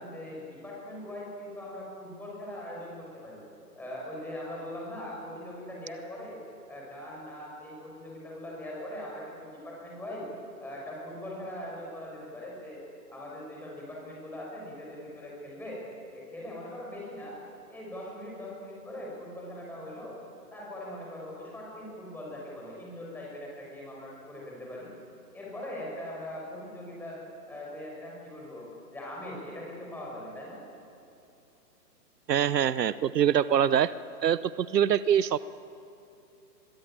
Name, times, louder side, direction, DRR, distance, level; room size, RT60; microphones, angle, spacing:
voice 1, 0.0-3.4 3.8-6.4 6.7-10.3 10.6-12.8 13.1-15.8 16.1-17.4 17.7-20.2 20.5-24.9 25.3-27.2 27.5-28.6 28.9-30.6, left 1 dB, 5° left, -3 dB, 6.1 m, -41 dB
voice 2, 32.3-33.9 34.2-35.4, right 9 dB, 75° right, 17 dB, 0.8 m, -24 dB
23.5 x 22.0 x 8.9 m, 2.7 s
hypercardioid pair, 155°, 49 cm